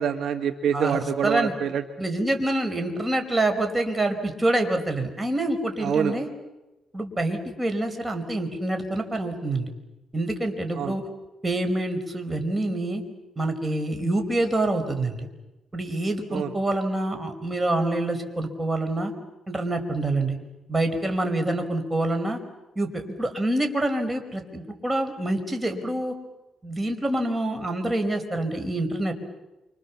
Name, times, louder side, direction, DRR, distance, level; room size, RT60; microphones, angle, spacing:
voice 1, 0.0-1.8 5.8-6.1 10.8-10.9 16.3-16.5, right 8 dB, 70° right, 7 dB, 1.8 m, -26 dB
voice 2, 0.7-1.5 2.0-6.3 6.9-9.7 10.1-11.0 11.4-13.0 13.4-15.3 15.7-19.1 19.5-20.4 20.7-22.4 22.7-26.1 26.6-29.1, right 1 dB, 20° right, 6 dB, 4.9 m, -26 dB
28.5 x 26.5 x 7.3 m, 1.0 s
cardioid pair, 90°, 0 cm